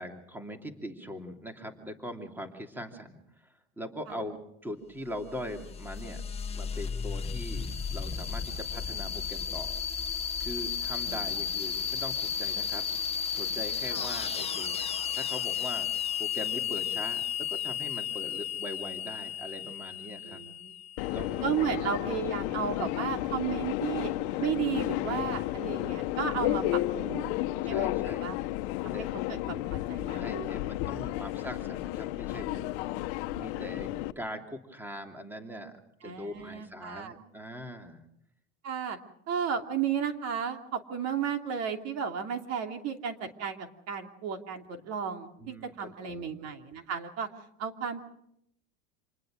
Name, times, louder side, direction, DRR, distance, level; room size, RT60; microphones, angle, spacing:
voice 1, 0.0-6.2 6.5-10.0 10.4-12.8 13.3-15.9 16.2-20.4 21.1-21.5 27.6-28.3 28.9-29.1 30.1-32.7 33.3-33.9 34.2-35.7 36.0-38.1 45.4-46.3, equal, 5° right, 5 dB, 2.8 m, -41 dB
sound 1, 5.2-21.5, left 7 dB, 15° left, 1.3 m, -34 dB
voice 2, 20.3-20.7 21.4-24.1 24.4-27.3 27.6-28.3 28.8-30.6 36.0-37.1 38.6-39.0 39.3-47.3 47.6-48.0, right 7 dB, 45° right, 5 dB, 2.9 m, -34 dB
Subway metro underground, 21.0-34.1, left 16 dB, 60° left, 1.3 m, -32 dB
27.5 x 20.0 x 6.4 m, 0.75 s
supercardioid pair, 130°, 35 cm